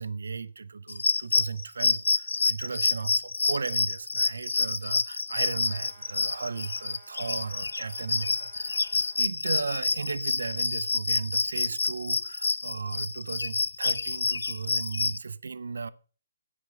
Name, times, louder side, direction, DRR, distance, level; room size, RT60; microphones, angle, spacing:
voice 1, 0.0-8.8 9.2-15.9, right 4 dB, 70° right, 0.6 m, -35 dB
Morning crickets and bird, 0.9-15.2, left 3 dB, 75° left, 0.5 m, -28 dB
sound 1, 5.4-9.3, right 4 dB, 25° right, 3.2 m, -56 dB
10.0 x 7.4 x 5.6 m
figure-of-eight pair, 135°, 0 cm